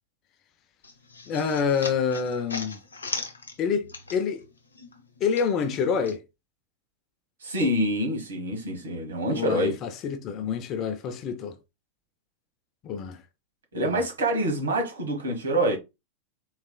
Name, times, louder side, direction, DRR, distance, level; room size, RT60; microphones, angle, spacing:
sound 1, 0.8-4.5 4.8-6.2, left 3 dB, 75° left, 0.6 m, -38 dB
voice 1, 1.3-2.8 3.6-4.5 5.2-6.2 9.3-11.6 12.8-13.2 13.8-14.0, left 6 dB, 35° left, 0.5 m, -27 dB
voice 2, 7.4-9.8 13.7-15.8, right 1 dB, 70° right, 1.3 m, -26 dB
3.9 x 3.0 x 2.2 m
figure-of-eight pair, 90°, 0 cm